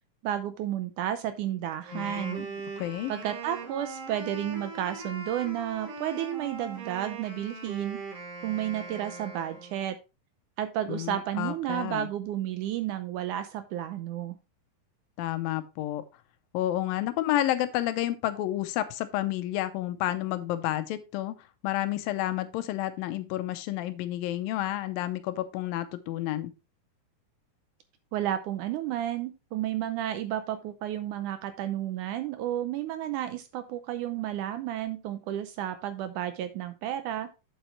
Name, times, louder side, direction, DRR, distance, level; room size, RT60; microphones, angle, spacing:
voice 1, 0.2-2.5 3.1-8.0 8.4-10.0 10.6-14.4 28.1-37.3, right 11 dB, 80° right, 10 dB, 1.9 m, -32 dB
Wind instrument woodwind instrument, 1.7-9.9, right 3 dB, 45° right, 2.7 m, -40 dB
voice 2, 1.9-2.5 2.8-3.1 10.9-12.1 15.2-16.0 16.5-21.4 21.6-26.5, left 14 dB, 80° left, 12 dB, 2.5 m, -30 dB
8.2 x 7.5 x 3.1 m, 0.28 s
omnidirectional pair, 4.1 m